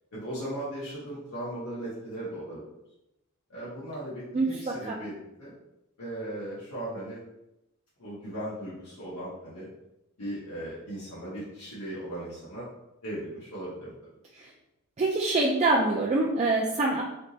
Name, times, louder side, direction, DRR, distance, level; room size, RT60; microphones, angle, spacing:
voice 1, 0.1-2.7 3.5-5.6 6.0-7.2 8.0-9.7 10.2-12.7 13.0-13.9, right 1 dB, 90° left, -9 dB, 1.0 m, -37 dB
voice 2, 4.3-5.0 14.4-14.5 15.0-17.0, right 2 dB, 30° right, -3 dB, 0.3 m, -25 dB
3.3 x 2.9 x 2.7 m, 0.90 s
head